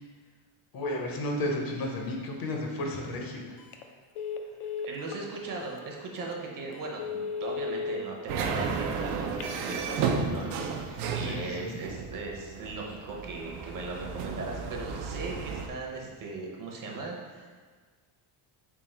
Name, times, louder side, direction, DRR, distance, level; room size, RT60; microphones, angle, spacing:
voice 1, 0.7-3.6 11.2-11.7, left 1 dB, 45° left, 1 dB, 0.7 m, -33 dB
Telephone, 3.6-3.8 4.1-5.2 5.8-5.9 6.3-6.4 6.9-8.0 9.2-9.8, left 6 dB, 85° left, 0.6 m, -35 dB
voice 2, 4.8-17.6, right 3 dB, 40° right, -1 dB, 0.7 m, -38 dB
sound 1, 8.3-15.7, right 5 dB, 85° right, 0.6 m, -33 dB
3.6 x 2.8 x 4.2 m, 1.5 s
cardioid pair, 125°, 49 cm